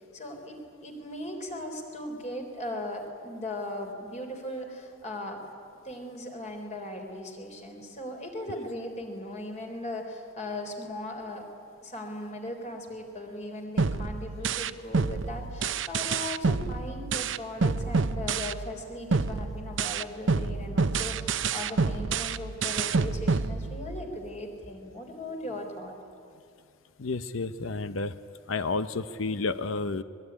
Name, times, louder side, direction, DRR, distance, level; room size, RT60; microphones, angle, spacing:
voice 1, 0.1-5.4 5.8-11.5 11.8-26.0, left 1 dB, 35° left, 3 dB, 3.9 m, -38 dB
sound 1, 13.8-18.8 19.1-24.1, right 4 dB, 70° right, 0.8 m, -28 dB
voice 2, 27.0-28.1 28.5-30.0, left 3 dB, 80° left, 12 dB, 0.8 m, -31 dB
24.5 x 21.0 x 9.8 m, 2.4 s
head